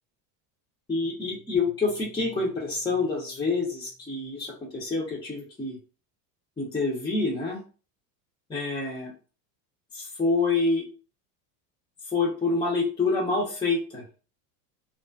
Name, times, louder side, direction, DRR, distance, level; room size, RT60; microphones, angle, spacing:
voice 1, 0.9-5.8 6.6-7.6 8.5-9.1 9.9-10.9 12.1-14.0, left 3 dB, 10° left, -3 dB, 0.4 m, -27 dB
2.4 x 2.3 x 2.2 m, 0.36 s
supercardioid pair, 105°, 48 cm